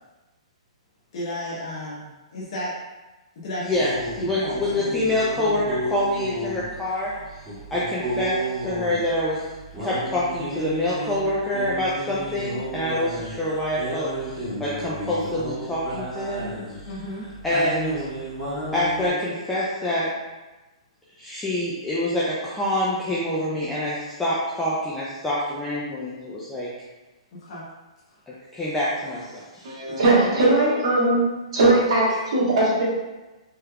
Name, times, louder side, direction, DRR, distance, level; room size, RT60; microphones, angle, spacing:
voice 1, 1.1-2.7 3.4-3.8 4.2-5.1 16.8-17.3 27.4-27.7 30.2-30.5, equal, 55° left, -6 dB, 0.9 m, -33 dB
voice 2, 3.6-3.9 4.2-7.1 7.7-9.4 9.8-14.3 14.6-16.5 17.4-18.0 18.7-20.1 21.2-26.7 28.3-29.7, left 1 dB, 5° left, -8 dB, 0.5 m, -26 dB
sound 1, 3.7-19.1, right 1 dB, 15° right, 1.4 m, -33 dB
voice 3, 29.6-31.3 31.5-32.8, right 2 dB, 60° right, -6 dB, 1.4 m, -19 dB
3.3 x 3.2 x 2.3 m, 1.1 s
hypercardioid pair, 145°, 3 cm